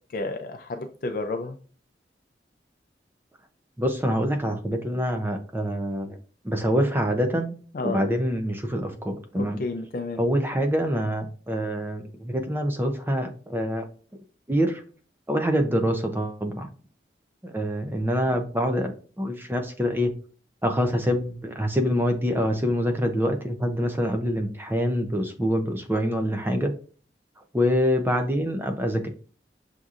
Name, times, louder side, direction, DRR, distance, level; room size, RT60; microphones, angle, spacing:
voice 1, 0.1-1.6 7.7-8.0 9.4-10.2, left 2 dB, 50° left, 4 dB, 0.4 m, -31 dB
voice 2, 3.8-6.2 6.4-7.6 7.8-9.6 10.2-13.8 14.5-14.8 15.3-16.7 17.4-18.9 19.2-20.1 20.6-26.7 27.5-29.1, equal, 10° right, 5 dB, 0.4 m, -25 dB
6.0 x 2.7 x 2.4 m, 0.40 s
head